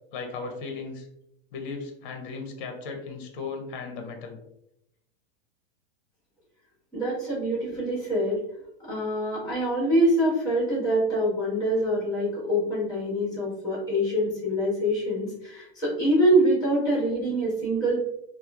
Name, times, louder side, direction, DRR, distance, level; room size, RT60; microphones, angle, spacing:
voice 1, 0.1-1.1 1.5-4.4, left 4 dB, 55° left, 4 dB, 0.7 m, -36 dB
voice 2, 6.9-8.4 8.8-18.0, right 1 dB, 10° left, -6 dB, 1.3 m, -25 dB
2.9 x 2.1 x 2.3 m, 0.80 s
supercardioid pair, 150°, 31 cm